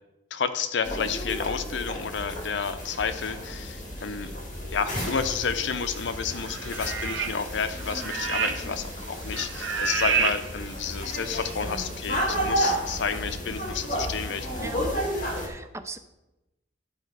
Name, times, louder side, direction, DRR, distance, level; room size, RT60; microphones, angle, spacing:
voice 1, 0.3-4.3 4.7-14.6, left 6 dB, 70° left, 11 dB, 0.6 m, -31 dB
sound 1, 0.8-15.5, equal, 45° left, 2.1 m, -32 dB
sound 2, 6.4-7.5 7.7-8.8 9.0-10.4 11.0-11.1, right 5 dB, 85° right, 0.9 m, -28 dB
voice 2, 15.4-16.0, right 2 dB, 15° right, 9 dB, 0.4 m, -39 dB
11.5 x 4.4 x 4.7 m, 0.97 s
head